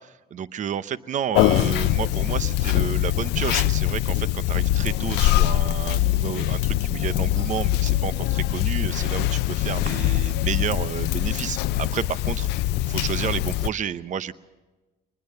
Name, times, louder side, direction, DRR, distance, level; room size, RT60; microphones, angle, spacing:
voice 1, 0.0-12.5 12.9-14.3, right 8 dB, 45° right, 15 dB, 0.8 m, -31 dB
Conversation, 1.4-13.7, left 15 dB, 85° left, 0.6 m, -23 dB
22.5 x 20.5 x 6.6 m, 1.2 s
cardioid pair, 110°, 17 cm